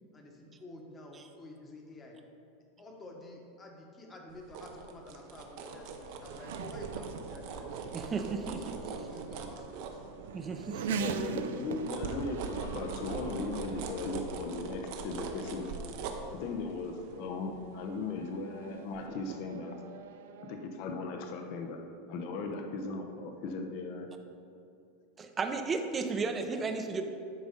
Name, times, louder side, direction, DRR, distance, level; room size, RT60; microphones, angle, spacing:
voice 1, 0.1-2.2 2.8-7.8 8.8-10.0 10.7-10.9, left 2 dB, 20° left, 1 dB, 1.2 m, -49 dB
sound 1, 4.3-10.6 11.0-18.5 18.9-19.1, right 4 dB, 60° right, 0.8 m, -42 dB
Race car auto racing / Accelerating revving vroom, 4.5-20.7, right 5 dB, 85° right, 0.5 m, -43 dB
voice 2, 7.9-8.7 10.3-11.0 25.2-27.0, right 4 dB, 20° right, 6 dB, 0.6 m, -34 dB
voice 3, 11.0-15.8 16.3-19.8 20.4-21.8 22.1-24.1, left 3 dB, 55° left, 4 dB, 0.8 m, -37 dB
10.5 x 3.9 x 5.2 m, 2.6 s
supercardioid pair, 145°, 0 cm